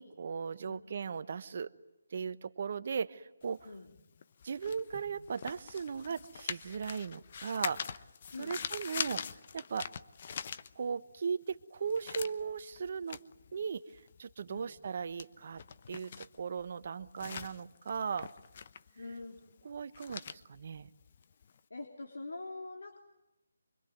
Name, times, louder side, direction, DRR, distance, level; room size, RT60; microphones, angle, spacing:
voice 1, 0.0-1.7 2.1-3.7 4.4-7.9 8.4-9.2 9.5-9.9 10.8-13.2 13.5-13.8 14.2-15.6 15.9-18.3 19.6-20.9, right 6 dB, 50° right, 13 dB, 1.1 m, -37 dB
sound 1, 3.4-11.2 11.5-21.6, left 7 dB, 40° left, 0.9 m, -43 dB
voice 2, 3.6-4.0 4.9-5.0 8.3-8.6 14.5-14.7 19.0-19.4 21.7-23.0, left 2 dB, 75° left, 3 dB, 3.5 m, -44 dB
25.5 x 24.5 x 9.4 m, 0.93 s
figure-of-eight pair, 160°, 0 cm